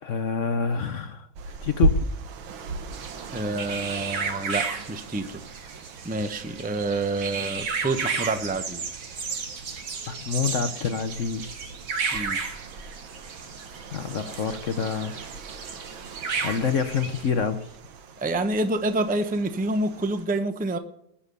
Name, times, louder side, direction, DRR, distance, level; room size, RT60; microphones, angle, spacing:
voice 1, 0.0-1.3 1.6-2.0 10.1-11.7 13.9-15.2 16.4-17.7, left 6 dB, 60° left, 9 dB, 0.8 m, -27 dB
sound 1, 1.4-20.3, right 2 dB, 90° right, 1.9 m, -36 dB
sound 2, 2.9-17.3, right 5 dB, 65° right, 2.3 m, -34 dB
voice 2, 3.3-5.4 6.0-8.8 12.1-12.4 18.2-20.8, right 2 dB, 10° right, 9 dB, 0.4 m, -27 dB
20.0 x 7.1 x 6.7 m, 0.78 s
omnidirectional pair, 2.1 m